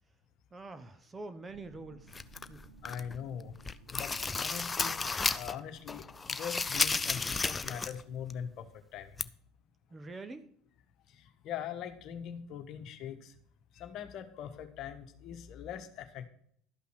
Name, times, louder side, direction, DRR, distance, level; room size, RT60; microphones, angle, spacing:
voice 1, 0.5-2.6 9.9-10.5, right 3 dB, 25° right, 11 dB, 1.1 m, -46 dB
sound 1, 1.4-8.7, right 2 dB, 85° right, 2.2 m, -59 dB
sound 2, 2.1-3.2 3.5-5.6 5.9-8.0 8.3-8.4 9.2-9.3, left 4 dB, 20° left, 0.6 m, -33 dB
voice 2, 2.8-3.5 3.9-5.0 5.3-9.1 11.1-13.3 13.7-16.3, left 8 dB, 55° left, 8 dB, 1.3 m, -42 dB
12.5 x 5.7 x 6.0 m, 0.62 s
hypercardioid pair, 70°, 0 cm